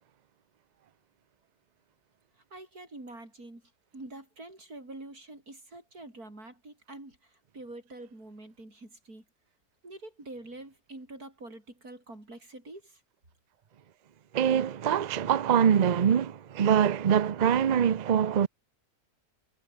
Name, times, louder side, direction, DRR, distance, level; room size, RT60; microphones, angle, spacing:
voice 1, 2.5-3.6 3.9-9.2 9.8-13.0, right 2 dB, 75° right, 7.6 m, -46 dB
voice 2, 14.3-18.5, right 8 dB, 55° right, 0.5 m, -24 dB
omnidirectional pair, 1.6 m